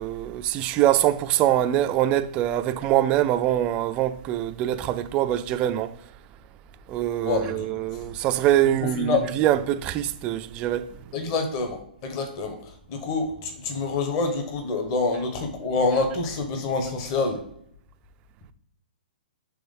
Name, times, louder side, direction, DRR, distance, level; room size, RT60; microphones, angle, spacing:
voice 1, 0.0-5.9 6.9-10.9, right 12 dB, 20° right, 0.3 m, -23 dB
voice 2, 7.2-7.7 8.8-9.3 11.1-17.4, left 3 dB, 30° left, 1.1 m, -27 dB
6.1 x 3.5 x 5.3 m
hypercardioid pair, 155°, 5 cm